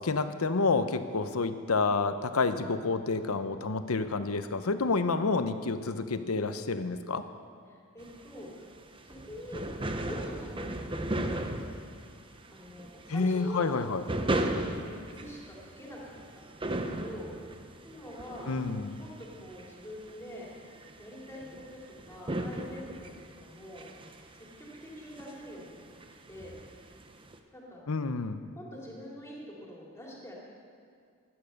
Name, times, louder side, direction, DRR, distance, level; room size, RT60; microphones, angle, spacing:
voice 1, 0.0-7.2 13.1-14.0 18.5-18.9 27.9-28.4, left 4 dB, 85° left, 10 dB, 0.8 m, -29 dB
voice 2, 7.7-8.7 9.0-11.4 12.5-13.8 14.1-16.7 17.0-17.3 17.8-18.5 19.0-20.5 21.0-21.8 22.1-23.9 24.3-25.9 26.3-26.5 27.5-27.8 28.5-30.3, equal, 15° left, -4 dB, 3.1 m, -45 dB
sound 1, 8.0-27.4, right 1 dB, 25° right, 0.8 m, -37 dB
15.5 x 11.0 x 6.5 m, 2.3 s
head